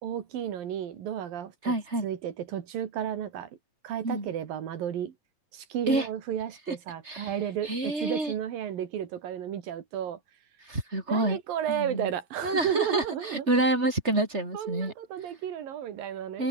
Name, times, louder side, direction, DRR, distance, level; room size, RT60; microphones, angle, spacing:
voice 1, 0.0-1.7 2.0-3.5 3.8-5.1 5.5-10.2 11.1-13.7 14.5-16.5, right 10 dB, 90° right, 3.9 m, -33 dB
voice 2, 1.6-2.1 4.0-4.3 5.9-6.1 6.7-6.8 7.0-7.3 7.6-8.3 10.7-11.4 11.7-12.1 12.4-14.9 16.4-16.5, right 2 dB, 15° right, 7.4 m, -28 dB
open air
omnidirectional pair, 3.9 m